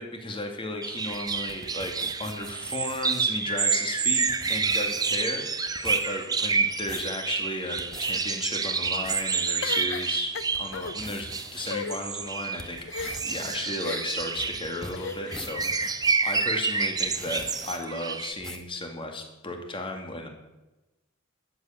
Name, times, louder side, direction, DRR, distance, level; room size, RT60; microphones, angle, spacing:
voice 1, 0.0-1.9 2.2-5.5 5.8-10.3 10.6-20.3, left 2 dB, 25° left, 3 dB, 2.1 m, -34 dB
sound 1, 0.8-18.3, right 5 dB, 15° right, 0.7 m, -29 dB
sound 2, 0.9-3.3 4.0-4.1 4.3-5.3 5.7-6.1 6.6-7.1 7.6-8.1 8.7-9.3 9.8-9.9 10.4-11.7 12.2-16.4 17.0-17.8 18.4-18.7, equal, 5° left, 1.1 m, -43 dB
sound 3, 9.6-10.9 11.6-12.0 12.9-13.4 13.8-14.3 14.9-15.5, left 5 dB, 55° left, 0.6 m, -35 dB
13.0 x 8.1 x 9.0 m, 1.0 s
head